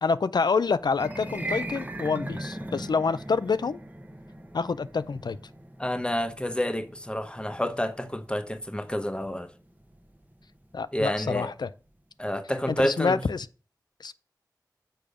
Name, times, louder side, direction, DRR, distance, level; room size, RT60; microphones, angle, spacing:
voice 1, 0.0-3.8 4.5-5.4 10.7-11.7 12.7-13.5 14.0-14.1, left 4 dB, 85° left, 0.4 m, -27 dB
sound 1, 0.9-11.2, right 1 dB, 25° right, 1.0 m, -40 dB
voice 2, 5.8-9.5 10.9-11.5 12.2-13.2, left 1 dB, 15° left, 0.9 m, -29 dB
6.9 x 5.1 x 4.9 m
wide cardioid pair, 60°, 7 cm